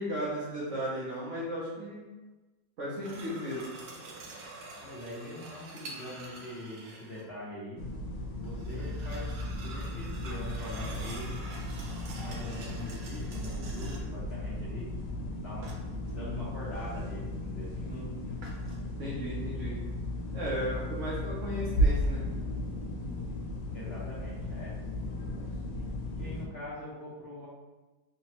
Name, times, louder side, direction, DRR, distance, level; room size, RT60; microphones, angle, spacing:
voice 1, 0.0-2.1 2.8-3.6 17.8-18.1 19.0-19.8 20.3-22.2, equal, 60° right, -7 dB, 0.9 m, -35 dB
sound 1, 3.0-7.3 8.4-14.2 15.6-16.2 18.4-18.8, right 2 dB, 75° right, 1.4 m, -46 dB
voice 2, 4.8-7.8 8.4-9.3 9.6-11.3 12.1-14.9 15.4-15.7 16.1-17.9 23.7-24.8 26.1-27.5, left 1 dB, 55° left, -9 dB, 0.8 m, -43 dB
sound 2, 7.8-26.5, left 1 dB, 80° left, 1.2 m, -35 dB
3.3 x 3.0 x 2.9 m, 1.2 s
omnidirectional pair, 1.9 m